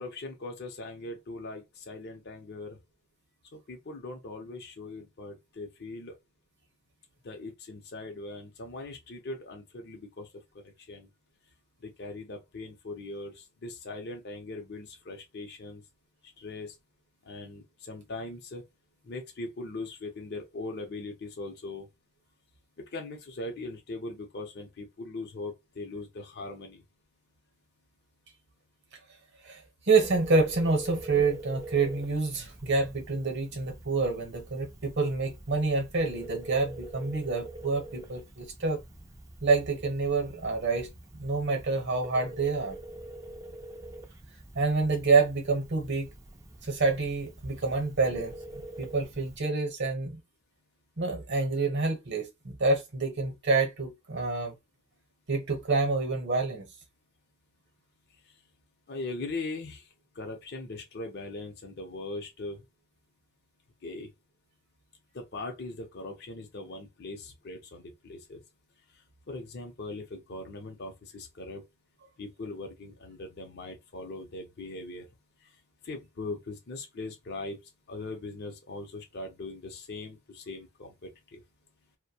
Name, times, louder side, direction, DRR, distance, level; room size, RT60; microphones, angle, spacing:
voice 1, 0.0-2.8 3.7-6.1 7.2-10.3 10.6-11.1 11.8-15.8 16.4-16.7 17.2-18.6 19.0-21.9 22.9-26.8 58.9-59.9 60.2-62.6 63.8-64.1 65.1-68.4 69.3-71.6 72.2-75.1 75.8-77.6 77.9-81.4, left 2 dB, 50° left, 0.6 m, -40 dB
voice 2, 29.9-38.8 39.4-40.9 41.1-42.8 44.5-46.1 46.6-48.3 48.8-50.2 51.0-54.5 55.3-56.6, right 3 dB, 55° right, 0.9 m, -27 dB
Telephone, 30.0-49.4, right 1 dB, 15° right, 0.4 m, -45 dB
2.6 x 2.2 x 2.6 m
head